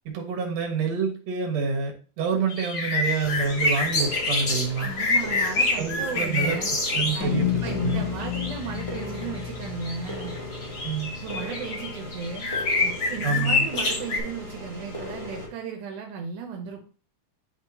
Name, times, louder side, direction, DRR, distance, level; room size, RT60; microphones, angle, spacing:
voice 1, 0.1-4.9 5.8-6.6 6.9-8.0 10.8-11.2 13.2-13.7, right 5 dB, 65° right, 2 dB, 2.4 m, -27 dB
sound 1, 2.5-7.2 7.6-14.2, left 3 dB, 45° left, 1.4 m, -26 dB
sound 2, 3.2-15.5, left 1 dB, 15° left, 1.4 m, -38 dB
voice 2, 4.8-6.7 7.1-10.4 11.2-12.5 12.8-16.9, right 6 dB, 80° right, 2 dB, 2.3 m, -35 dB
sound 3, 7.2-11.7, left 11 dB, 75° left, 2.4 m, -31 dB
10.5 x 3.6 x 2.8 m, 0.39 s
omnidirectional pair, 3.6 m